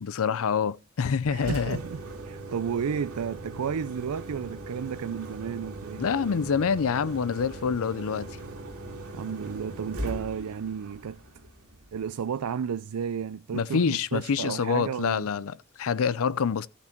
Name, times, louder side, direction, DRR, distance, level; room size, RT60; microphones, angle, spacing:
voice 1, 0.0-1.8 6.0-8.3 13.5-16.7, left 6 dB, 65° left, 0.5 m, -26 dB
Engine, 1.3-12.2, right 2 dB, 70° right, 2.2 m, -40 dB
voice 2, 1.3-2.0 2.3-6.0 9.1-11.2 11.9-15.3, right 7 dB, 90° right, 0.4 m, -32 dB
14.0 x 6.0 x 4.5 m
head